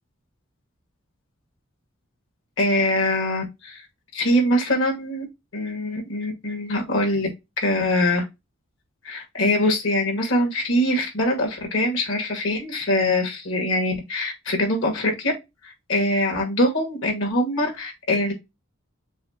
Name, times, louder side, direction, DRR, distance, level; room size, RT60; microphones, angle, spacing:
voice 1, 2.6-3.8 4.1-5.3 5.5-7.3 7.6-8.2 9.0-15.3 15.6-18.3, left 1 dB, 75° left, 2.0 m, -23 dB
6.9 x 2.4 x 2.9 m
head